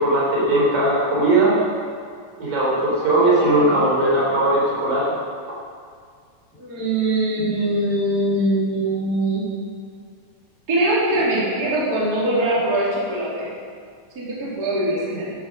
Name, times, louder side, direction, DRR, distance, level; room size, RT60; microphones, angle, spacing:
voice 1, 0.0-1.6 2.4-5.1, right 1 dB, 80° right, -5 dB, 5.2 m, -18 dB
voice 2, 3.1-3.8 6.5-9.5 10.7-13.5 14.1-15.3, right 1 dB, 30° right, -7 dB, 3.1 m, -22 dB
11.5 x 9.3 x 6.5 m, 2.1 s
omnidirectional pair, 3.7 m